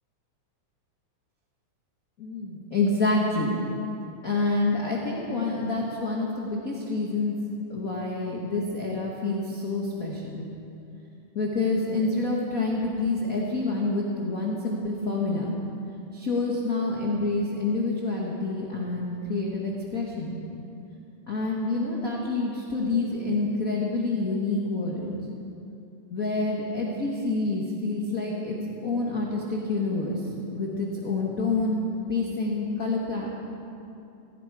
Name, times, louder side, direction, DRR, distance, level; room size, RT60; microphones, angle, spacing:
voice 1, 2.2-3.6 4.2-7.3 7.7-10.4 11.3-15.5 16.1-20.4 21.3-25.1 26.1-28.5 28.8-30.2 30.5-33.3, left 3 dB, 40° left, -3 dB, 1.3 m, -27 dB
16.0 x 16.0 x 4.8 m, 2.8 s
omnidirectional pair, 3.5 m